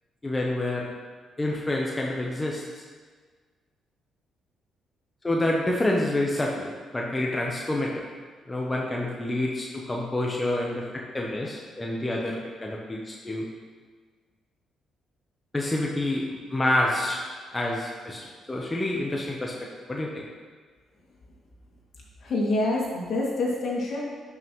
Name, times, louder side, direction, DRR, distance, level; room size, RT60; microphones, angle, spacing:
voice 1, 0.2-0.9 1.4-2.6 5.2-8.0 8.5-13.5 15.5-17.2 17.5-20.3, left 1 dB, 15° left, -2 dB, 0.9 m, -28 dB
voice 2, 22.2-24.0, left 2 dB, 60° left, -4 dB, 2.3 m, -26 dB
11.0 x 5.8 x 3.1 m, 1.5 s
cardioid pair, 90°, 0 cm